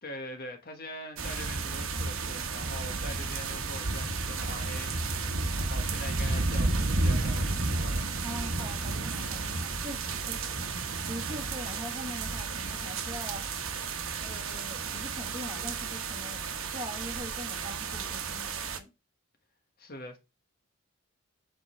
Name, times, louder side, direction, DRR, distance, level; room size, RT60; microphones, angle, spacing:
voice 1, 0.0-8.1 19.8-20.2, left 1 dB, 40° left, 1.4 m, -43 dB
sound 1, 1.2-18.8, right 3 dB, 65° right, 1.1 m, -32 dB
voice 2, 8.2-13.4 14.2-16.4 16.7-18.9, equal, 20° right, 1.5 m, -43 dB
7.9 x 3.8 x 4.3 m
head